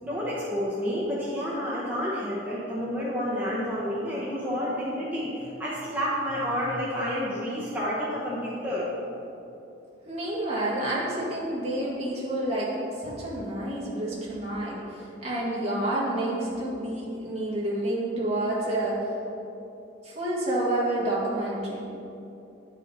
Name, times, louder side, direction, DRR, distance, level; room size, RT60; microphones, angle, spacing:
voice 1, 0.0-8.9, equal, 10° right, -9 dB, 1.0 m, -30 dB
voice 2, 10.1-19.1 20.0-21.8, right 1 dB, 35° right, -6 dB, 1.9 m, -29 dB
10.5 x 5.1 x 4.1 m, 2.8 s
head